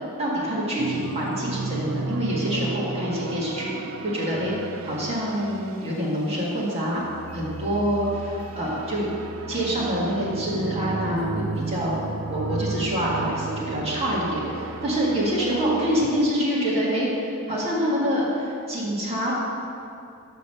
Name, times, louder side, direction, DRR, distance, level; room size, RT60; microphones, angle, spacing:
voice 1, 0.2-3.7 4.0-4.5 4.8-7.0 7.3-9.1 9.5-12.0 12.3-19.3, equal, 30° right, -6 dB, 1.9 m, -26 dB
sound 1, 0.8-6.6 7.0-16.2, right 4 dB, 80° right, 0.4 m, -33 dB
6.1 x 5.6 x 6.5 m, 2.6 s
head